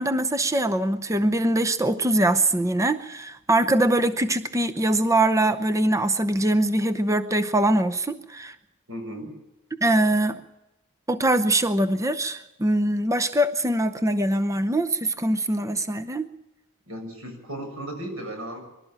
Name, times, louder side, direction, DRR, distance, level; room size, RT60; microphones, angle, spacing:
voice 1, 0.0-8.6 9.8-10.4 11.1-16.3, right 1 dB, 15° right, 10 dB, 0.7 m, -23 dB
voice 2, 8.9-9.3 16.9-18.6, right 1 dB, 85° right, 4 dB, 6.8 m, -35 dB
24.5 x 12.5 x 8.8 m, 0.96 s
head